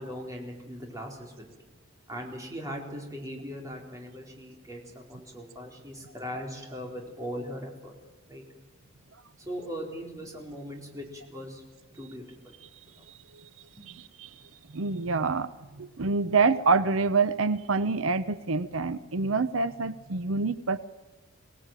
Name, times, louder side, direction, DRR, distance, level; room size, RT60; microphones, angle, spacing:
voice 1, 0.0-1.5 2.1-7.9 8.3-8.4 9.5-11.6 12.0-12.6 13.8-13.9, equal, 15° right, 0 dB, 4.3 m, -39 dB
voice 2, 14.0-14.3 14.7-15.5 15.8-20.8, right 4 dB, 90° right, 13 dB, 0.8 m, -26 dB
24.5 x 18.0 x 9.1 m, 1.2 s
head